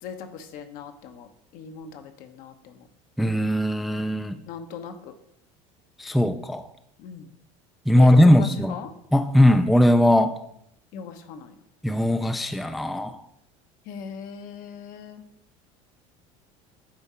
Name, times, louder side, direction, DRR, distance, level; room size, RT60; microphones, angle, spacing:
voice 1, 0.0-2.9 4.5-5.1 7.0-7.3 7.9-8.9 10.9-11.5 13.9-15.2, left 7 dB, 65° left, 7 dB, 0.9 m, -39 dB
voice 2, 3.2-4.4 6.0-6.7 7.9-8.8 9.1-10.4 11.8-13.2, left 1 dB, ahead, 8 dB, 0.3 m, -19 dB
8.8 x 3.6 x 4.3 m, 0.73 s
supercardioid pair, 110°, 16 cm